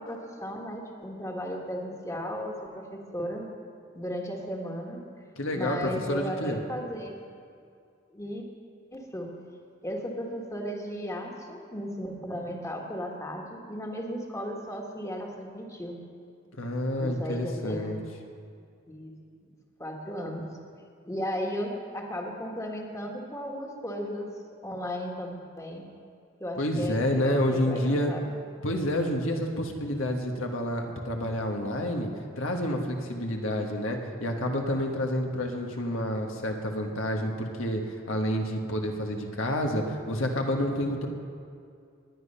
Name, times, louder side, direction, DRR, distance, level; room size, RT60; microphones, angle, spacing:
voice 1, 0.0-3.5 3.9-5.0 5.5-7.2 8.1-8.4 8.9-9.3 9.8-16.0 17.0-18.0 18.9-19.1 19.4-19.5 19.8-20.5 21.0-24.3 24.6-25.9 26.4-28.3, equal, 15° left, 0 dB, 1.6 m, -35 dB
voice 2, 5.4-6.6 16.6-18.0 26.6-28.1 28.6-32.1 32.4-41.1, left 1 dB, 85° left, 2 dB, 1.6 m, -29 dB
19.0 x 10.0 x 5.6 m, 2.3 s
head